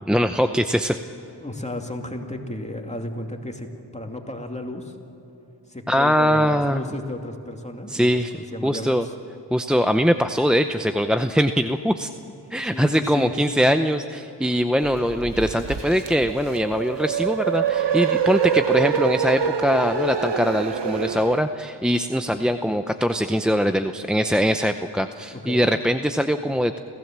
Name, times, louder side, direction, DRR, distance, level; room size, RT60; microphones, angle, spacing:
voice 1, 0.1-1.0 5.9-6.8 7.9-8.3 8.6-9.1 9.5-12.1 12.5-26.8, equal, ahead, 8 dB, 0.7 m, -22 dB
voice 2, 1.4-5.0 5.7-9.1 12.6-13.3 25.3-25.7, left 1 dB, 15° left, 3 dB, 2.5 m, -34 dB
sound 1, 14.8-21.4, right 7 dB, 75° right, 1.1 m, -25 dB
28.5 x 15.5 x 7.5 m, 3.0 s
wide cardioid pair, 60°, 42 cm